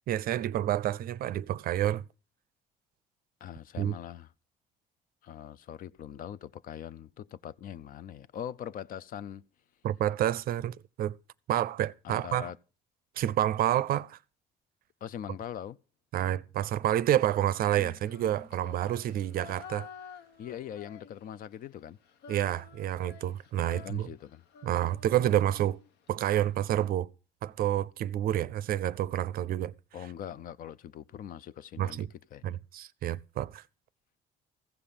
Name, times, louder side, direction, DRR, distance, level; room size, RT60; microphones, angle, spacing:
voice 1, 0.1-2.0 3.8-3.9 9.8-11.1 11.5-12.5 13.2-14.2 16.1-19.9 22.3-24.1 24.6-25.8 26.1-27.1 27.4-29.7 31.8-32.1 32.4-33.6, right 12 dB, 60° right, 0.5 m, -29 dB
voice 2, 3.4-4.3 5.2-9.4 12.0-12.6 15.0-15.8 20.4-22.0 23.7-24.4 29.9-32.0 32.3-32.6, left 10 dB, 55° left, 0.5 m, -42 dB
Female singing, 17.6-21.5 21.8-26.1, left 7 dB, 75° left, 1.0 m, -50 dB
15.0 x 5.6 x 6.8 m
cardioid pair, 110°, 17 cm